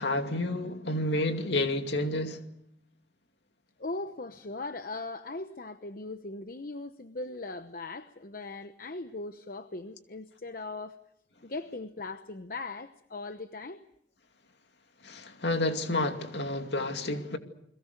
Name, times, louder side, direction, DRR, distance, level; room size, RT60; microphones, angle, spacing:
voice 1, 0.0-2.4 15.0-17.4, left 2 dB, 65° left, 2.5 m, -30 dB
voice 2, 3.8-11.0 11.4-13.8, left 2 dB, 50° left, 0.9 m, -39 dB
30.0 x 22.0 x 6.7 m
head